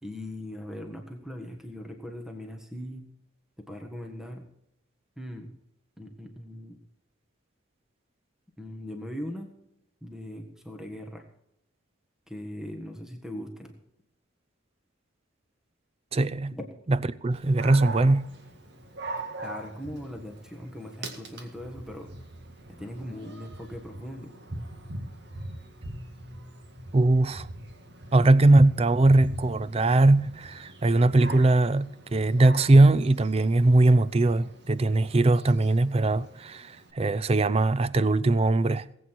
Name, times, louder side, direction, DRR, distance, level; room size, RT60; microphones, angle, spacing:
voice 1, 0.0-3.1 3.7-4.5 5.2-5.6 6.0-6.8 8.6-9.5 10.0-11.3 12.3-13.7 16.5-16.6 19.4-22.1 22.8-24.3, equal, 5° right, 1.5 m, -39 dB
voice 2, 16.1-16.6 16.9-18.3 26.9-27.5 28.1-38.9, right 2 dB, 30° right, 0.5 m, -21 dB
Dog, 17.3-36.9, right 2 dB, 55° right, 1.9 m, -42 dB
19.5 x 8.5 x 4.6 m
head